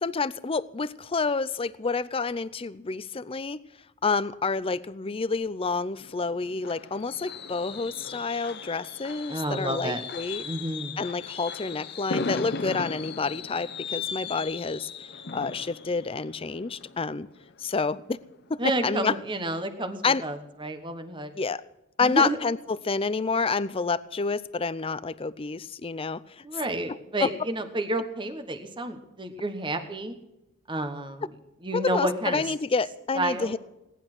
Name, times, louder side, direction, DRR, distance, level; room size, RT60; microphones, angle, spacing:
voice 1, 0.0-3.6 4.0-10.4 11.0-14.9 15.3-17.3 17.6-18.2 18.5-19.1 20.0-20.2 21.4-21.6 22.0-26.4 27.2-27.3 31.7-33.6, left 4 dB, 25° left, 16 dB, 0.5 m, -28 dB
Fireworks, 6.0-17.7 18.1-18.3 18.6-18.7, left 5 dB, 50° left, 0.9 m, -37 dB
voice 2, 9.3-10.0 10.4-11.0 18.6-21.3 22.0-22.4 26.4-30.1 30.7-31.3 31.6-32.4 33.1-33.6, right 1 dB, 25° right, 7 dB, 1.1 m, -30 dB
18.0 x 11.0 x 6.1 m, 0.94 s
head